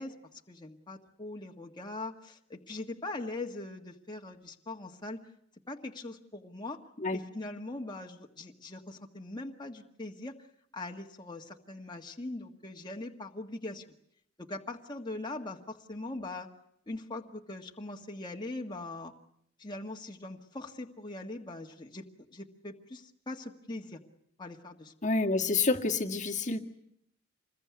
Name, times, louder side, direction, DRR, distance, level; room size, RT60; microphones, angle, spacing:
voice 1, 0.0-5.2 5.7-6.8 7.1-10.4 10.7-13.9 14.4-16.5 16.9-19.1 19.6-22.1 22.3-24.0 24.4-24.9, left 2 dB, 20° left, 1 dB, 1.8 m, -41 dB
voice 2, 25.0-26.6, left 3 dB, 35° left, 3 dB, 1.8 m, -28 dB
27.0 x 21.5 x 9.6 m, 0.72 s
head